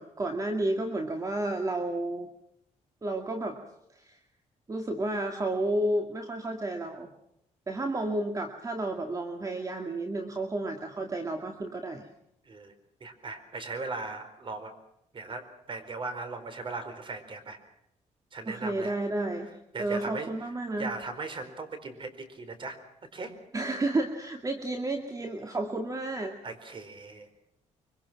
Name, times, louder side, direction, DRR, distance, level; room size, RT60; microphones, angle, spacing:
voice 1, 0.0-2.3 3.0-3.6 3.9-4.2 4.7-7.1 7.7-12.1 18.5-19.5 19.8-20.9 23.5-26.4, right 2 dB, 25° right, 4 dB, 2.2 m, -31 dB
voice 2, 13.0-14.7 15.1-17.6 18.3-19.0 19.7-20.3 20.8-22.8 23.1-23.3 26.4-27.3, right 3 dB, 40° right, 9 dB, 4.4 m, -38 dB
24.5 x 24.5 x 6.0 m, 0.77 s
cardioid pair, 110°, 13 cm